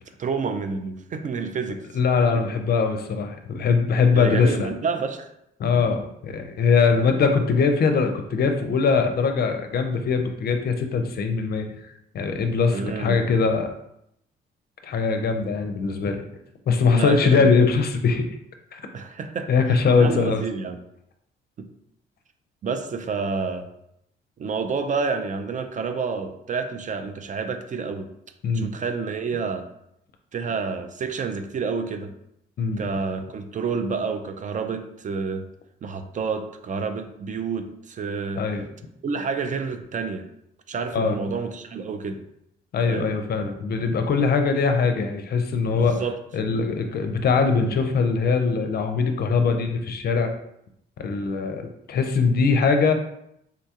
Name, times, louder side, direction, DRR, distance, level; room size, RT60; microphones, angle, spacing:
voice 1, 0.2-1.9 2.3-2.4 4.1-5.3 12.7-13.2 16.9-17.5 18.9-19.5 20.0-20.8 21.6-21.7 22.6-23.7 24.4-28.1 28.5-29.7 30.3-32.1 32.8-35.5 35.8-38.4 39.0-40.2 40.7-42.2 42.9-43.1 45.8-46.2, right 5 dB, 40° right, 7 dB, 0.4 m, -29 dB
voice 2, 1.9-4.7 5.6-13.7 14.8-16.2 16.7-18.2 18.7-18.8 19.5-20.4 28.4-28.7 32.6-32.8 38.4-38.6 40.9-41.2 42.7-46.0 46.3-50.3 51.0-52.9, left 5 dB, 50° left, 6 dB, 0.5 m, -21 dB
3.7 x 2.3 x 2.8 m, 0.78 s
cardioid pair, 90°, 20 cm